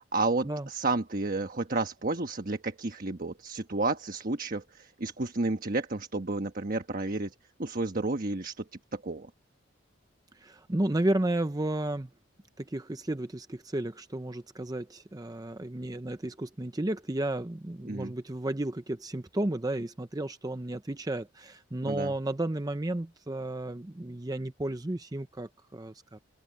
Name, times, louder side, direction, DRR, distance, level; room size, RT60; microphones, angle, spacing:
voice 1, 0.0-7.3 7.6-8.6 8.9-9.3 17.9-18.1 21.8-22.1, right 3 dB, 45° right, 1.2 m, -31 dB
voice 2, 10.3-12.1 12.6-26.2, right 1 dB, 20° right, 0.6 m, -33 dB
open air
head